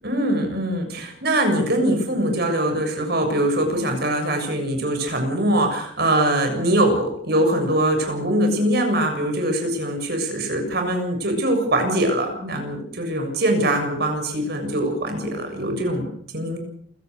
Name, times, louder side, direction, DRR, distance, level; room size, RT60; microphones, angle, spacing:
voice 1, 0.0-16.1 16.3-16.6, right 1 dB, 60° right, 4 dB, 7.2 m, -22 dB
28.0 x 16.5 x 6.6 m, 0.62 s
head